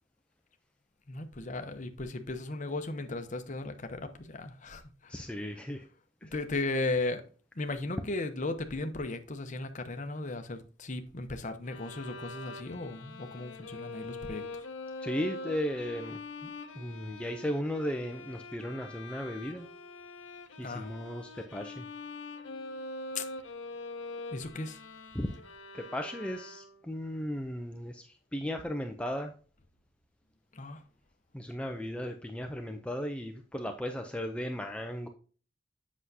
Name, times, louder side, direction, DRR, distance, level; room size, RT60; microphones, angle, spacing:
voice 1, 1.1-5.1 6.3-7.2 7.6-14.4 20.6-20.9 23.2-23.3 24.3-24.8 30.5-30.8, left 2 dB, 40° left, 0.8 m, -36 dB
voice 2, 5.1-5.9 6.2-6.3 15.0-19.7 20.6-21.9 25.1-25.3 25.7-29.3 31.3-35.1, equal, 5° left, 0.5 m, -36 dB
Bowed string instrument, 11.6-26.9, left 2 dB, 75° left, 0.9 m, -44 dB
7.9 x 6.1 x 2.7 m
head